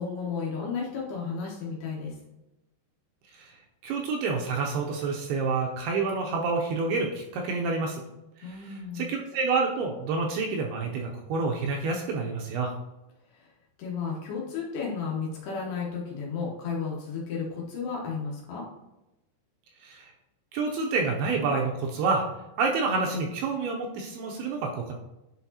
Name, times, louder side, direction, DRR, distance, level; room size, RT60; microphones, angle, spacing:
voice 1, 0.0-2.2 8.4-9.1 13.3-13.5 13.8-18.6, left 5 dB, 75° left, -3 dB, 2.9 m, -33 dB
voice 2, 3.8-8.0 9.0-12.7 19.8-20.1 20.5-22.2 22.6-24.9, right 4 dB, 80° right, 1 dB, 2.4 m, -28 dB
10.5 x 4.1 x 2.8 m, 0.95 s
omnidirectional pair, 5.0 m